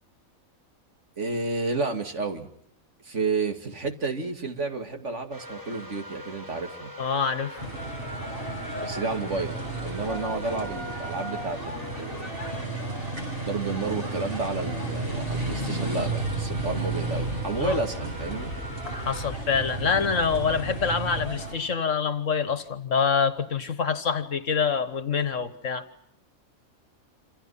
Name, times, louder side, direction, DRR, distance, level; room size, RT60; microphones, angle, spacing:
voice 1, 1.2-2.5 3.0-6.9 8.8-9.5 9.8-12.3 13.5-18.5, right 3 dB, 55° right, 6 dB, 2.6 m, -31 dB
sound 1, 5.3-19.3, left 1 dB, 15° right, 7.4 m, -42 dB
voice 2, 7.0-7.7 17.6-17.8 18.9-25.9, left 6 dB, 60° left, 13 dB, 1.8 m, -26 dB
sound 2, 7.6-21.5, right 2 dB, 40° right, 7.6 m, -33 dB
sound 3, 16.0-21.4, left 2 dB, 30° left, 1.9 m, -40 dB
27.5 x 27.5 x 5.7 m, 0.71 s
omnidirectional pair, 1.5 m